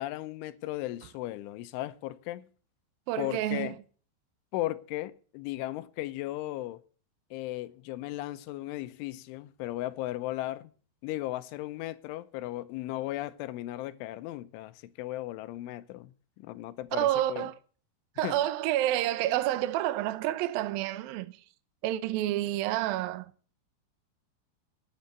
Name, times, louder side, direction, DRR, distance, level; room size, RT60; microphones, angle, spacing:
voice 1, 0.0-2.5 3.2-3.8 4.5-6.8 7.3-10.7 11.0-16.1 16.4-17.5 18.2-18.4, left 16 dB, 85° left, 3.3 m, -36 dB
voice 2, 3.1-3.8 16.9-17.6 18.2-21.4 21.8-23.3, right 14 dB, 80° right, 2.1 m, -29 dB
12.0 x 9.6 x 6.7 m
omnidirectional pair, 5.4 m